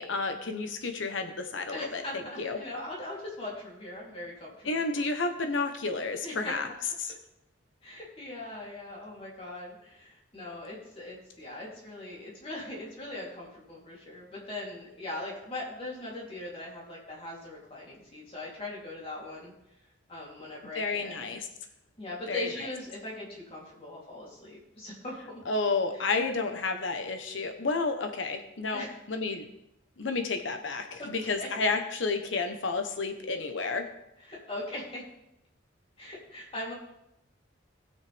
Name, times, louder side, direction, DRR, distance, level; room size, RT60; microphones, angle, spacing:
voice 1, 0.0-2.0 2.4-2.6 4.6-6.7 7.0-7.1 20.7-21.5 22.3-22.5 25.5-29.4 30.0-33.8, left 3 dB, 85° left, 6 dB, 1.0 m, -31 dB
voice 2, 1.7-4.7 6.2-6.5 7.8-19.5 20.1-21.3 22.0-25.4 25.9-26.0 28.7-29.0 31.0-31.1 31.4-31.5 34.3-35.0 36.0-36.7, left 1 dB, 30° left, -4 dB, 3.3 m, -40 dB
19.5 x 6.5 x 3.5 m, 0.84 s
head